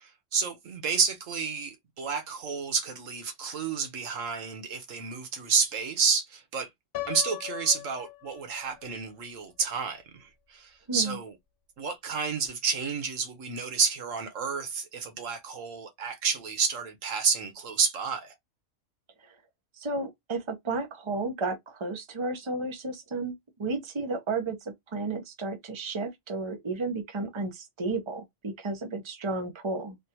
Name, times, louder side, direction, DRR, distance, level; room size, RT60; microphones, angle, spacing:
voice 1, 0.0-6.7 7.1-11.3 11.8-18.3, right 5 dB, 85° right, 1.4 m, -30 dB
Piano, 6.9-8.9, left 16 dB, 60° left, 0.7 m, -38 dB
voice 2, 19.8-23.3 23.6-30.0, right 3 dB, 25° right, 0.8 m, -33 dB
3.4 x 2.6 x 2.8 m
omnidirectional pair, 1.3 m